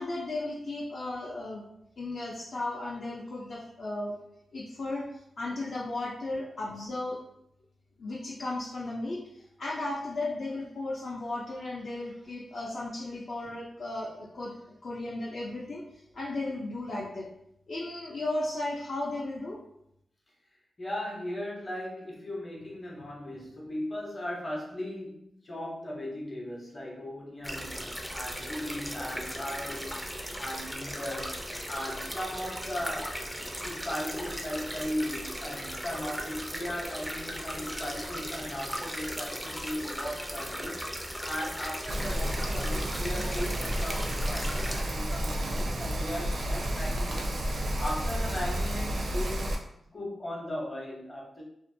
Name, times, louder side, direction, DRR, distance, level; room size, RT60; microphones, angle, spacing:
voice 1, 0.0-1.6 2.0-4.1 4.5-5.1 5.4-7.2 8.0-9.2 9.6-14.5 14.8-15.8 16.1-17.3 17.7-19.6, left 2 dB, 60° left, -5 dB, 0.5 m, -35 dB
voice 2, 20.8-33.2 33.6-47.3 47.6-49.5 49.9-51.4, left 1 dB, 30° left, -3 dB, 0.8 m, -37 dB
sound 1, 27.4-44.8, equal, ahead, 0.4 m, -37 dB
Rain, 41.9-49.5, equal, 65° right, 0.5 m, -31 dB
2.5 x 2.2 x 2.6 m, 0.77 s
cardioid pair, 90°, 0 cm